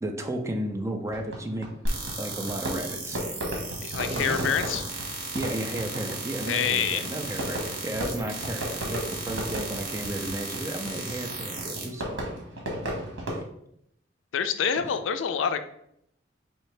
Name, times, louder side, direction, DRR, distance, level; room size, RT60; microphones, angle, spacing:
voice 1, 0.0-1.7 2.2-3.2 4.0-4.5 5.3-12.3 13.3-13.4 14.8-14.9, right 1 dB, 15° right, 4 dB, 0.4 m, -33 dB
Fireworks, 1.1-13.4, right 1 dB, 75° right, 1.2 m, -35 dB
sound 1, 1.9-11.8, right 3 dB, 50° right, 1.0 m, -35 dB
voice 2, 3.8-4.8 6.4-7.0 14.3-15.6, left 7 dB, 85° left, 10 dB, 0.4 m, -26 dB
4.3 x 2.8 x 3.2 m, 0.73 s
head